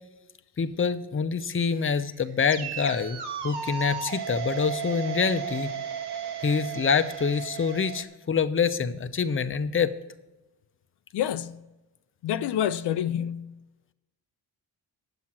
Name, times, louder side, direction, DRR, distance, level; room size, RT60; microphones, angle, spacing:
voice 1, 0.6-5.7 6.4-9.9, left 6 dB, 30° left, 0.7 m, -26 dB
sound 1, 1.7-8.0, right 8 dB, 85° right, 1.3 m, -35 dB
voice 2, 11.1-11.6 12.2-13.5, left 10 dB, 85° left, 0.5 m, -28 dB
9.8 x 7.5 x 6.0 m
cardioid pair, 85°, 39 cm